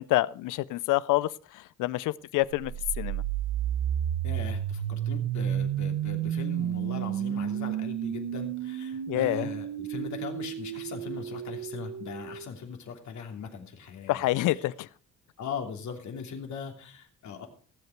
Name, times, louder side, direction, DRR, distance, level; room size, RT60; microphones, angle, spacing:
voice 1, 0.0-2.7 3.0-3.2 9.1-9.5 14.1-14.9, left 17 dB, 85° left, 20 dB, 0.6 m, -27 dB
sound 1, 2.5-12.5, right 10 dB, 70° right, 1.0 m, -32 dB
voice 2, 4.2-14.3 14.5-14.6 15.4-17.5, left 6 dB, 70° left, 3 dB, 3.1 m, -39 dB
18.0 x 8.1 x 4.6 m, 0.40 s
cardioid pair, 90°, 30 cm